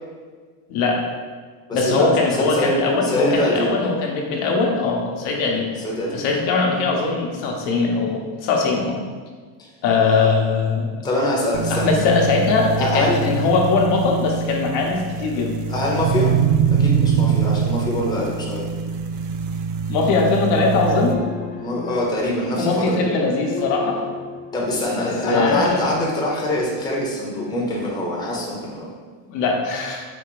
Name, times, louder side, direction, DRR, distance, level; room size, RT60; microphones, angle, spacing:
voice 1, 0.7-1.0 1.7-5.7 6.1-9.0 9.8-11.0 11.7-15.6 19.9-21.2 22.6-24.0 25.0-25.8 29.3-30.0, left 4 dB, 75° left, 0 dB, 0.9 m, -21 dB
voice 2, 1.7-3.8 5.8-6.2 9.6-9.7 10.0-10.3 11.0-12.0 12.8-13.2 15.7-16.3 16.8-18.6 21.6-23.1 24.5-28.9, left 1 dB, 10° left, -4 dB, 0.6 m, -24 dB
sound 1, 11.5-21.1, right 6 dB, 50° right, 0.4 m, -23 dB
sound 2, 20.8-25.8, left 2 dB, 50° left, 0.7 m, -34 dB
4.0 x 2.5 x 4.6 m, 1.6 s
cardioid pair, 140°, 45 cm